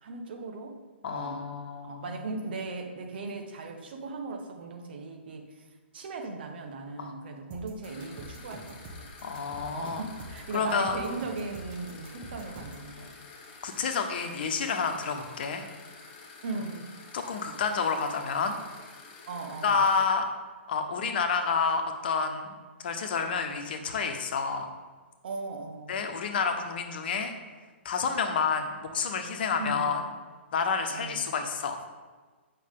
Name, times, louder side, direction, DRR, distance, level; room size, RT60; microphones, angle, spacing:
voice 1, 0.0-0.8 1.1-1.5 1.8-5.7 5.9-9.1 9.7-13.2 16.4-16.9 19.3-19.8 25.2-26.0 29.5-30.1 30.9-31.3, right 3 dB, 55° right, 3 dB, 1.2 m, -38 dB
voice 2, 1.0-2.0 7.0-7.1 9.2-10.0 10.5-11.0 13.6-15.6 17.1-18.6 19.6-20.2 20.7-22.5 22.8-24.7 25.9-27.3 27.8-30.0 30.5-31.8, left 5 dB, 50° left, 5 dB, 1.1 m, -29 dB
sound 1, 7.5-12.9, right 1 dB, 25° right, 1.2 m, -45 dB
sound 2, 7.8-20.1, left 4 dB, 30° left, 1.5 m, -49 dB
8.5 x 5.7 x 3.6 m, 1.4 s
figure-of-eight pair, 125°, 7 cm